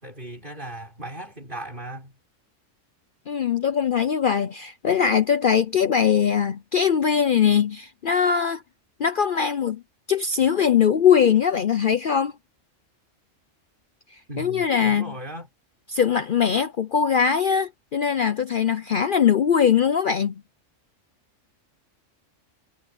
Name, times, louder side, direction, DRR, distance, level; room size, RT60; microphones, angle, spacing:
voice 1, 0.0-2.1 14.3-15.5, right 1 dB, 40° right, 6.6 m, -37 dB
voice 2, 3.3-8.6 9.0-9.8 10.1-12.3 14.4-15.1 15.9-20.4, left 7 dB, 50° left, 0.8 m, -21 dB
omnidirectional pair, 1.3 m